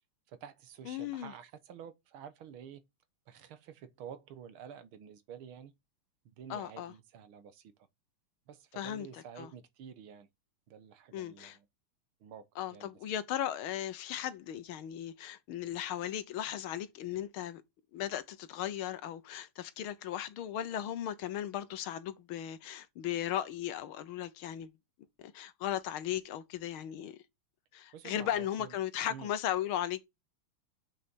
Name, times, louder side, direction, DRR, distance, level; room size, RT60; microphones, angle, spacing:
voice 1, 0.3-2.8 3.3-5.7 6.3-7.7 8.5-10.3 10.7-11.6 12.2-12.4 12.7-12.9 27.9-28.7 29.1-29.3, right 8 dB, 70° right, 1.8 m, -49 dB
voice 2, 0.8-1.3 6.5-6.9 8.7-9.5 11.1-11.6 12.5-17.6 17.9-24.7 25.2-27.2 27.7-30.1, left 11 dB, 75° left, 1.7 m, -37 dB
7.0 x 6.1 x 6.1 m
omnidirectional pair, 2.4 m